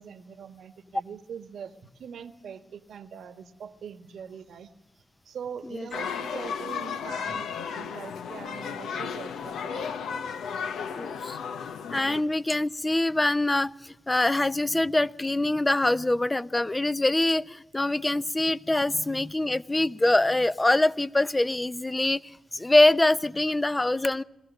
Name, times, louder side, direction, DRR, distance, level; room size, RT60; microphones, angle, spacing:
voice 1, 0.0-4.7 5.2-9.9 10.3-10.4, right 7 dB, 75° right, 11 dB, 1.3 m, -42 dB
sound 1, 5.9-12.2, left 6 dB, 80° left, 0.8 m, -34 dB
voice 2, 11.0-11.4 11.9-22.2 22.5-24.2, left 2 dB, 20° left, 15 dB, 0.7 m, -24 dB
21.5 x 15.0 x 9.1 m, 0.93 s
supercardioid pair, 40°, 0 cm